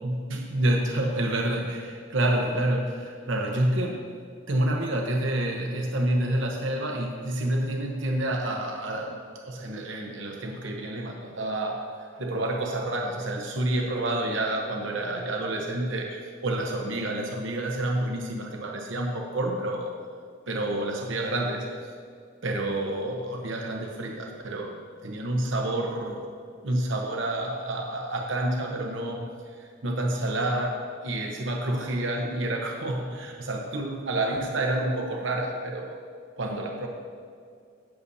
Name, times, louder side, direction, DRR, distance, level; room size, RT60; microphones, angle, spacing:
voice 1, 0.0-4.0 4.5-9.2 9.4-19.9 20.5-21.7 22.4-24.7 25.0-26.2 26.6-29.3 29.6-36.0 36.4-36.9, right 1 dB, 65° right, 1 dB, 1.0 m, -28 dB
16.5 x 6.9 x 2.8 m, 2.2 s
head